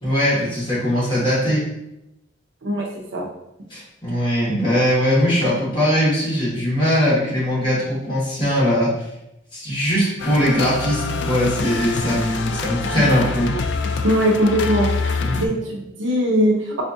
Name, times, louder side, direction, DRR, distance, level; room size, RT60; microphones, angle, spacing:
voice 1, 0.0-1.6 3.7-8.9 9.5-13.5 15.2-15.4, equal, 25° left, -8 dB, 1.5 m, -20 dB
voice 2, 2.6-3.3 13.0-13.1 14.0-14.9 15.4-16.8, equal, 70° right, 0 dB, 0.6 m, -20 dB
sound 1, 10.2-15.5, left 4 dB, 60° left, 0.3 m, -26 dB
4.2 x 2.5 x 2.6 m, 0.87 s
head